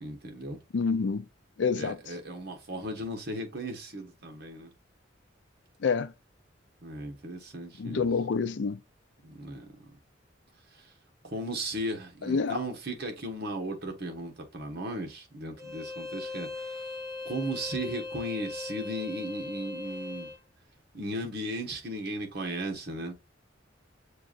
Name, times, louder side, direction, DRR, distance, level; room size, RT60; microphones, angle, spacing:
voice 1, 0.0-0.6 1.8-4.7 6.8-8.1 9.2-10.0 11.2-16.8 17.2-20.3 20.9-23.1, right 1 dB, 55° right, 1.2 m, -36 dB
voice 2, 0.7-1.2 1.6-2.0 5.8-6.1 7.8-8.8 12.2-12.6, left 5 dB, 65° left, 0.4 m, -27 dB
Bowed string instrument, 15.6-20.4, left 3 dB, 15° right, 0.9 m, -39 dB
6.7 x 2.5 x 2.4 m
head